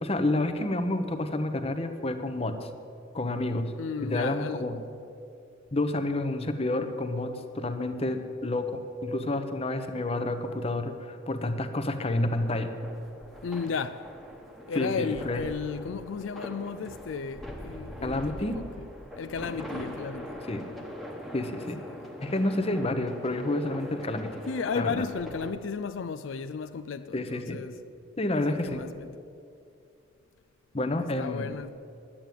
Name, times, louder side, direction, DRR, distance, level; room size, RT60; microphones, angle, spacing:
voice 1, 0.0-2.7 3.1-3.7 4.0-4.8 5.7-12.7 14.8-15.4 18.0-18.6 20.5-20.6 21.3-21.8 22.2-24.3 24.7-25.0 27.1-27.6 28.2-28.8 30.7-31.5, left 2 dB, 30° left, 0.8 m, -29 dB
voice 2, 3.7-4.7 13.4-14.0 14.7-18.6 19.2-20.4 24.5-27.8 28.4-29.1 31.2-31.7, left 5 dB, 75° left, 0.4 m, -34 dB
sound 1, 12.3-25.5, equal, ahead, 1.1 m, -42 dB
11.0 x 8.7 x 9.2 m
head